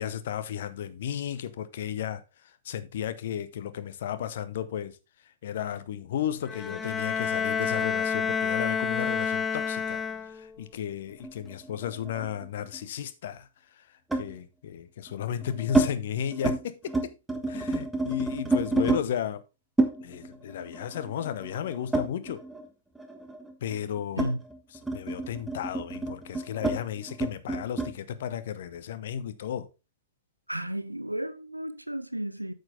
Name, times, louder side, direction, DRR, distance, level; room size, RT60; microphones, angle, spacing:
voice 1, 0.0-5.0 5.4-17.1 17.5-19.4 20.0-22.4 23.6-24.3 24.9-29.7, left 9 dB, 55° left, 0.9 m, -34 dB
Bowed string instrument, 6.5-10.6, left 6 dB, 15° left, 0.5 m, -29 dB
sound 1, 11.2-12.8 14.1-14.4 15.1-15.9 16.3-16.6 16.9-19.0 19.8-22.7 23.0-27.9, right 2 dB, 5° right, 1.4 m, -29 dB
voice 2, 30.5-32.5, right 1 dB, 90° right, 0.7 m, -33 dB
9.0 x 6.4 x 3.6 m
figure-of-eight pair, 110°, 0 cm